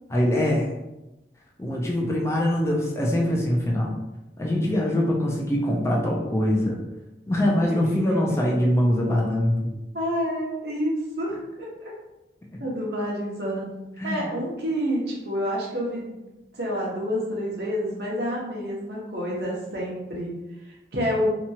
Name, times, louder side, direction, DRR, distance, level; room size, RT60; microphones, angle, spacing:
voice 1, 0.1-0.7 1.6-4.0 4.4-6.8 7.3-9.8 12.5-12.6 14.0-14.3, left 1 dB, 15° left, -2 dB, 0.3 m, -23 dB
voice 2, 7.7-8.2 9.9-11.9 12.6-13.7 14.0-16.2 16.5-20.3 20.6-21.3, equal, 65° right, -4 dB, 0.9 m, -28 dB
2.9 x 2.3 x 2.7 m, 0.98 s
head